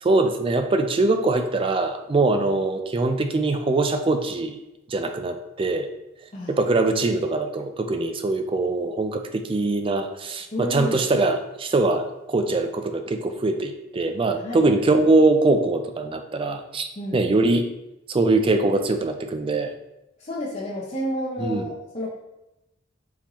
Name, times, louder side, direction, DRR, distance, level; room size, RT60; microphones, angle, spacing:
voice 1, 0.0-4.6 4.9-5.9 6.5-17.7 18.1-19.7 21.4-21.6, right 2 dB, 25° right, 7 dB, 0.3 m, -22 dB
voice 2, 10.5-11.0 14.4-14.7 17.0-17.2 20.2-22.1, left 1 dB, 35° left, -5 dB, 0.6 m, -30 dB
4.3 x 3.8 x 3.0 m, 0.92 s
head